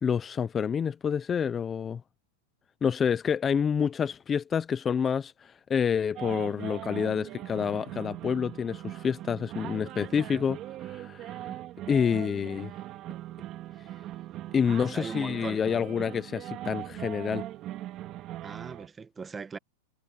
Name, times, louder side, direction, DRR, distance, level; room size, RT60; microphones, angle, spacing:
voice 1, 0.0-2.0 2.8-11.5 11.9-12.7 13.8-13.9 14.5-17.5, left 7 dB, 20° left, 0.5 m, -28 dB
sound 1, 6.2-18.9, right 14 dB, 30° right, 2.9 m, -40 dB
voice 2, 14.9-15.6 18.4-19.6, right 5 dB, 15° right, 1.2 m, -39 dB
supercardioid pair, 150°, 0 cm